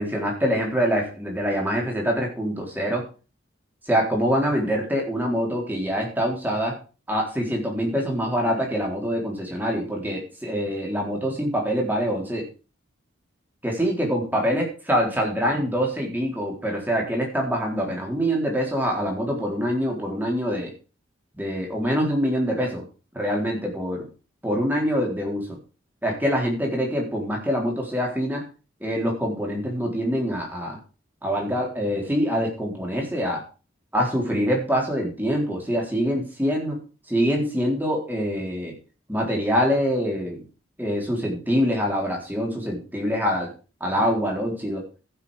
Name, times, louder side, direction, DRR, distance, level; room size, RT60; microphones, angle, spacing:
voice 1, 0.0-3.0 3.9-6.7 7.1-12.5 13.6-20.7 21.4-22.8 23.1-24.1 24.4-25.6 26.0-28.4 28.8-30.8 31.2-33.4 33.9-36.8 37.1-38.8 39.1-40.4 40.8-43.5 43.8-44.8, equal, 10° right, -1 dB, 3.9 m, -25 dB
15.0 x 6.9 x 5.1 m, 0.34 s
head